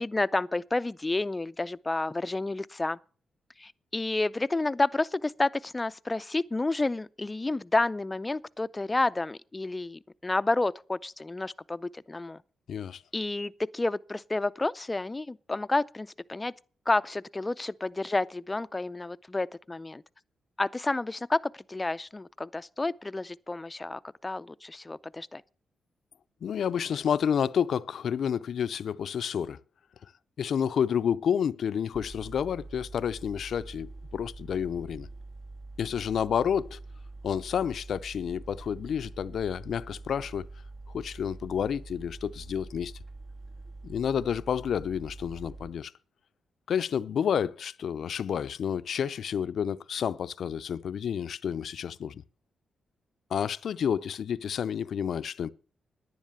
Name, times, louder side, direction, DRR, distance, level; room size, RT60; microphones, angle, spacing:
voice 1, 0.0-3.0 3.6-12.4 13.1-16.5 16.9-20.0 20.6-21.4 21.7-25.4, left 2 dB, 20° left, 0.5 m, -30 dB
voice 2, 12.7-13.0 26.4-29.6 30.4-35.1 35.8-36.8 37.2-40.5 40.9-42.9 43.8-45.9 46.7-52.2 53.3-55.5, left 8 dB, 70° left, 0.5 m, -30 dB
sound 1, 31.9-45.7, right 2 dB, 50° right, 1.8 m, -45 dB
10.5 x 10.0 x 6.8 m
cardioid pair, 80°, 0 cm